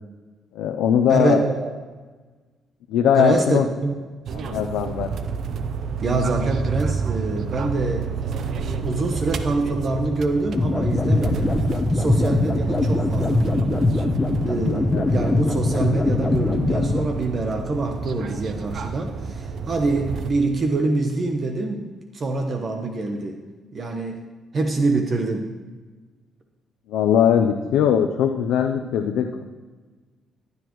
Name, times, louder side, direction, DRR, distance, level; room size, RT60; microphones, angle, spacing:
voice 1, 0.5-1.4 2.9-3.7 4.4-5.1 14.9-15.0 26.9-29.4, left 8 dB, 90° left, 3 dB, 0.6 m, -20 dB
voice 2, 1.1-1.7 3.1-3.9 6.0-8.1 8.6-11.6 11.9-13.9 14.4-21.9 22.1-23.4 23.7-24.2 24.5-25.5, right 3 dB, 45° right, 4 dB, 1.0 m, -25 dB
sound 1, 4.3-20.3, right 5 dB, 65° right, 0.7 m, -29 dB
sound 2, 10.5-17.0, left 2 dB, 20° left, 1.0 m, -22 dB
15.0 x 9.7 x 3.1 m, 1.3 s
cardioid pair, 90°, 0 cm